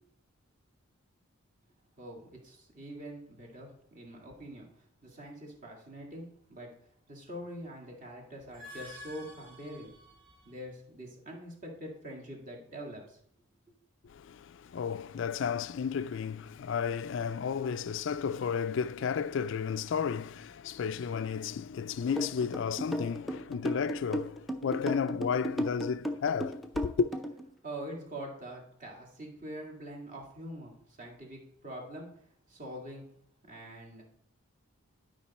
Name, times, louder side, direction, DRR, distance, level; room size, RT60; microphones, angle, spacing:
voice 1, 2.0-4.7 5.0-6.7 7.1-9.9 10.5-13.2 27.6-32.1 32.5-33.1 33.4-34.0, right 1 dB, 35° right, 2.0 m, -44 dB
sound 1, 8.4-10.6, left 1 dB, 65° right, 3.0 m, -50 dB
voice 2, 14.1-27.1, left 6 dB, 55° left, 0.3 m, -33 dB
sound 2, 22.2-27.4, equal, ahead, 0.5 m, -34 dB
11.5 x 5.3 x 4.2 m
head